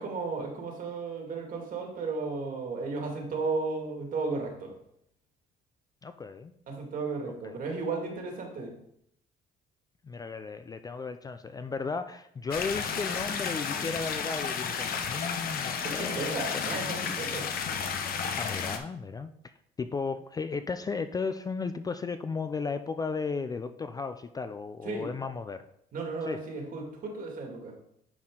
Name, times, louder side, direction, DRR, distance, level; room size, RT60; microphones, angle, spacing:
voice 1, 0.0-4.7 6.7-8.8 15.8-17.5 24.8-25.1 25.9-27.8, right 4 dB, 55° right, 1 dB, 2.1 m, -34 dB
voice 2, 6.0-6.5 7.4-7.5 10.0-16.4 16.8-17.1 18.4-19.3 19.8-25.6 26.3-26.4, left 4 dB, 20° left, 10 dB, 0.4 m, -35 dB
sound 1, 12.5-18.8, left 6 dB, 60° left, 0.8 m, -32 dB
10.0 x 4.3 x 3.7 m, 0.74 s
cardioid pair, 110°, 17 cm